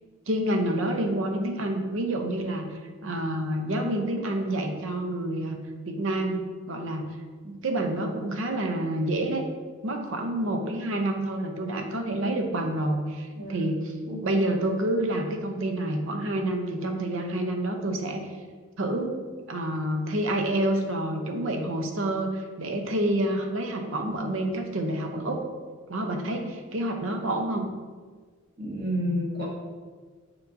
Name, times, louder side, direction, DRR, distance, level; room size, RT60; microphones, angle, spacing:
voice 1, 0.3-2.7 3.0-5.6 5.9-7.0 7.4-9.4 9.8-13.9 14.2-18.3 18.8-19.1 19.5-25.4 25.9-27.6, right 1 dB, 65° right, 4 dB, 0.7 m, -28 dB
voice 2, 28.6-29.4, equal, 45° right, -6 dB, 1.8 m, -30 dB
7.0 x 5.3 x 2.7 m, 1.5 s
head